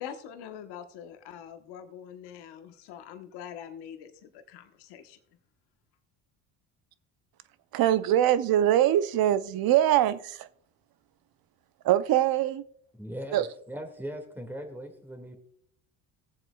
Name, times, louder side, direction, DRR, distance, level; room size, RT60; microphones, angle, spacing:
voice 1, 0.0-5.2, left 9 dB, 80° left, 7 dB, 1.2 m, -44 dB
voice 2, 7.7-10.5 11.8-12.6 13.3-13.5, right 12 dB, 60° right, 14 dB, 0.7 m, -23 dB
voice 3, 12.9-15.4, equal, 5° right, 4 dB, 2.0 m, -39 dB
19.5 x 7.5 x 2.3 m, 0.65 s
supercardioid pair, 85°, 40 cm